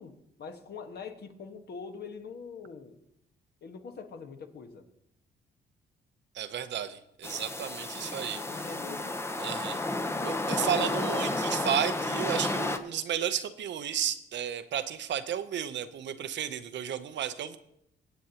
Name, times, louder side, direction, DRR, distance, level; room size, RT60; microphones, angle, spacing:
voice 1, 0.0-3.0 3.6-4.8 8.4-9.2, left 5 dB, 55° left, 6 dB, 1.4 m, -43 dB
voice 2, 6.4-8.4 9.4-9.8 10.2-17.6, right 9 dB, 65° right, 11 dB, 0.7 m, -33 dB
sound 1, 7.2-12.8, left 2 dB, 15° left, 0.8 m, -32 dB
23.5 x 8.0 x 2.9 m, 0.79 s
cardioid pair, 90°, 20 cm